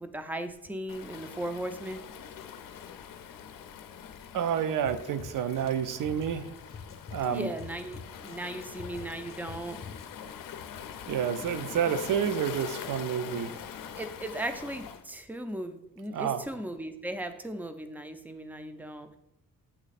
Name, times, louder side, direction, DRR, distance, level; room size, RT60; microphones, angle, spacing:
voice 1, 0.0-2.0 7.3-9.8 14.0-19.2, right 1 dB, 5° right, 8 dB, 0.3 m, -37 dB
Waves surf, 0.9-15.0, left 8 dB, 85° left, 0.5 m, -43 dB
voice 2, 4.3-6.5 7.1-7.5 11.1-13.6 16.1-16.4, right 8 dB, 75° right, 12 dB, 0.5 m, -29 dB
Drum kit, 4.8-10.3, left 5 dB, 45° left, 0.6 m, -47 dB
8.2 x 3.2 x 4.1 m, 0.87 s
wide cardioid pair, 160°, 32 cm